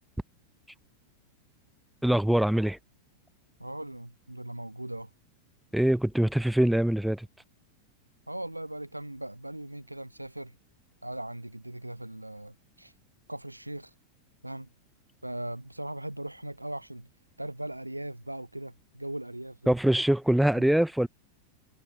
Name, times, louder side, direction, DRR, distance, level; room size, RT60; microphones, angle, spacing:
voice 1, 2.0-2.8 5.7-7.3 19.7-21.1, right 1 dB, ahead, 0.8 m, -23 dB
voice 2, 3.6-5.1 8.3-10.5 11.0-12.9 13.3-13.9 14.4-14.7 15.2-17.1 17.4-19.7 20.6-20.7, right 1 dB, 85° right, 3.9 m, -39 dB
figure-of-eight pair, 90°, 0 cm